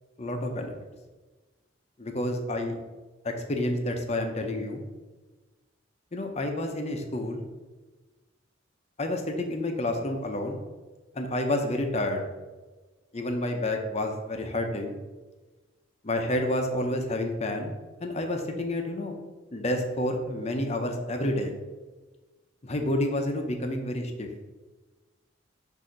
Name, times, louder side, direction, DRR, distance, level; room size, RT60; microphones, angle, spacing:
voice 1, 0.2-0.7 2.0-2.8 3.2-4.8 6.1-7.4 9.0-10.6 11.1-12.2 13.1-15.0 16.0-17.7 18.0-19.1 19.5-21.5 22.6-24.3, left 1 dB, 35° left, 4 dB, 0.7 m, -29 dB
6.4 x 2.8 x 5.6 m, 1.2 s
head